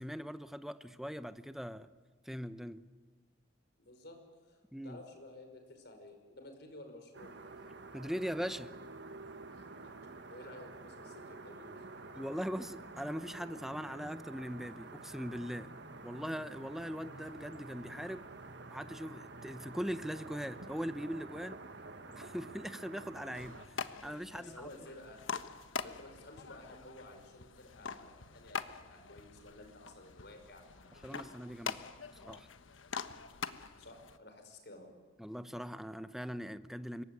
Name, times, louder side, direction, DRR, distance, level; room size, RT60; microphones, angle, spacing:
voice 1, 0.0-1.9 2.2-2.8 4.7-5.0 7.9-8.7 12.2-15.8 16.0-18.2 18.7-21.6 22.1-24.7 31.0-31.9 32.2-32.5 35.2-37.0, equal, ahead, 12 dB, 0.9 m, -41 dB
voice 2, 3.8-7.4 9.5-9.9 10.3-11.8 24.3-25.2 25.8-31.3 31.7-31.8 33.8-34.9, left 1 dB, 55° left, 5 dB, 5.6 m, -53 dB
sound 1, 7.1-23.7, right 3 dB, 60° right, 1.8 m, -49 dB
sound 2, 12.4-18.4, equal, 20° right, 1.3 m, -59 dB
sound 3, 23.3-34.2, left 5 dB, 80° left, 1.2 m, -44 dB
26.0 x 23.0 x 9.7 m, 1.4 s
head